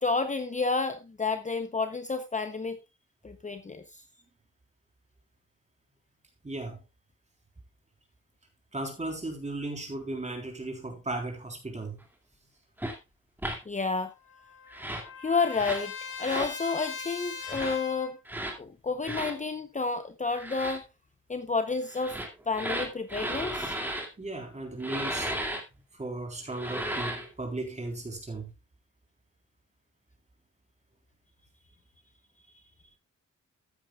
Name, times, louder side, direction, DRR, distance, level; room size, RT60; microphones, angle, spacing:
voice 1, 0.0-2.8 3.2-4.0 13.7-14.1 15.2-18.2 18.6-20.8 21.3-22.2 22.5-23.7, left 4 dB, 25° left, 0.7 m, -30 dB
voice 2, 6.4-6.8 8.7-12.0 24.2-25.3 25.9-28.5, right 2 dB, 20° right, 3.7 m, -36 dB
sound 1, 12.8-13.0 13.4-13.6 14.7-15.1 15.5-15.9 16.2-16.5 17.4-17.8 18.3-18.6 19.0-19.3 20.3-20.8 21.9-24.1 24.8-25.6 26.5-27.3, right 1 dB, 5° right, 2.2 m, -34 dB
Trumpet, 13.8-18.2, left 6 dB, 75° left, 2.9 m, -41 dB
14.0 x 9.1 x 2.3 m
wide cardioid pair, 160°, 30 cm